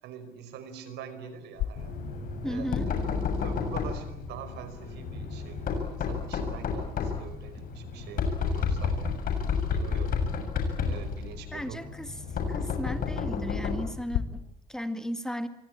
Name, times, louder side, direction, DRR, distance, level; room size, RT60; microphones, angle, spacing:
voice 1, 0.0-1.9 2.4-9.2 9.7-10.3 10.8-11.8, right 8 dB, 85° right, 11 dB, 5.1 m, -44 dB
sound 1, 1.5-14.2, left 13 dB, 85° left, 2.6 m, -43 dB
Knock, 1.8-14.0, left 5 dB, 55° left, 7.3 m, -31 dB
voice 2, 2.4-2.9 11.5-12.1 12.5-15.5, equal, 5° left, 9 dB, 2.2 m, -35 dB
26.5 x 24.0 x 8.7 m, 0.78 s
cardioid pair, 110°, 17 cm